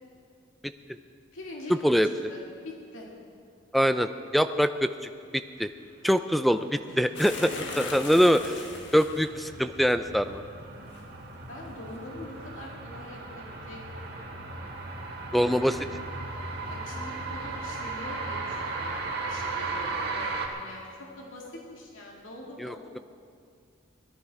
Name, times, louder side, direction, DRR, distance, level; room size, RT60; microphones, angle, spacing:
voice 1, 1.3-3.1 6.9-8.1 11.5-14.7 16.6-23.0, left 1 dB, 85° left, -2 dB, 2.3 m, -44 dB
voice 2, 3.7-4.9 5.3-5.7 6.0-7.5 7.8-8.4 8.9-10.4 15.3-15.8 22.6-22.7, equal, ahead, 10 dB, 0.3 m, -23 dB
sound 1, 7.1-12.7, left 3 dB, 65° left, 1.8 m, -42 dB
sound 2, 7.7-20.5, right 3 dB, 50° right, 1.8 m, -36 dB
18.0 x 13.0 x 4.8 m, 2.3 s
head